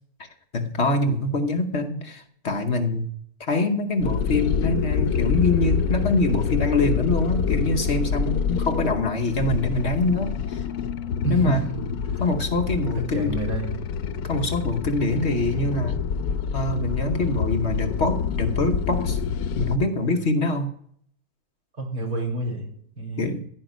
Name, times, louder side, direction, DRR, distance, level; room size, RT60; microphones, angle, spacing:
voice 1, 0.5-3.1 3.4-10.6 11.3-11.6 12.2-13.3 14.3-16.0 16.5-19.2 19.5-20.7 23.2-23.4, left 2 dB, 50° left, 5 dB, 1.2 m, -24 dB
sound 1, 4.0-19.8, left 6 dB, 80° left, 1.2 m, -26 dB
voice 2, 11.2-11.7 12.0-12.2 12.9-13.8 21.8-22.7 23.0-23.3, right 2 dB, 70° right, -1 dB, 4.1 m, -28 dB
15.5 x 5.2 x 9.1 m, 0.65 s
omnidirectional pair, 1.6 m